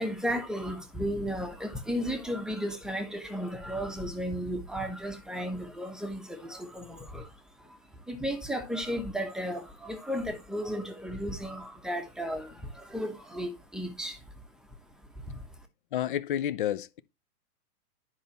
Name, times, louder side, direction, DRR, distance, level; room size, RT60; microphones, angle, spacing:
voice 1, 0.0-14.3 15.1-15.5, equal, ahead, 1.0 m, -34 dB
voice 2, 15.9-17.0, left 11 dB, 35° left, 0.5 m, -30 dB
9.9 x 5.6 x 2.9 m
figure-of-eight pair, 115°, 48 cm